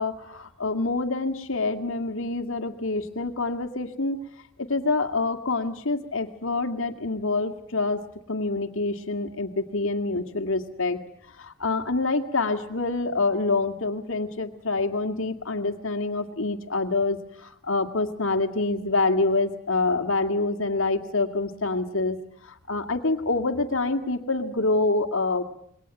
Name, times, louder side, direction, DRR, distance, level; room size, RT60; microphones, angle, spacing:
voice 1, 0.0-4.2 4.6-8.0 8.3-11.0 11.4-22.2 22.4-25.4, left 3 dB, 60° left, 7 dB, 2.1 m, -26 dB
28.0 x 22.5 x 9.0 m, 0.69 s
head